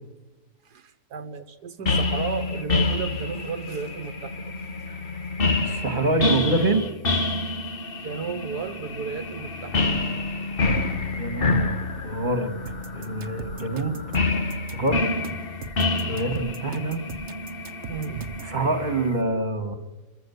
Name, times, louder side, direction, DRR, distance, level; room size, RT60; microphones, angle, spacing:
voice 1, 0.7-4.5 8.0-9.9 17.9-18.5, right 6 dB, 80° right, 8 dB, 1.7 m, -34 dB
sound 1, 1.9-19.1, left 3 dB, 35° left, 1.4 m, -28 dB
voice 2, 5.4-6.9 11.1-11.8 12.0-12.5 12.9-13.9 14.7-15.1 16.1-17.0 18.4-19.7, right 2 dB, 25° right, 7 dB, 2.4 m, -25 dB
sound 2, 12.7-18.6, right 4 dB, 55° right, 1.5 m, -40 dB
26.0 x 15.0 x 9.6 m, 1.2 s
omnidirectional pair, 1.7 m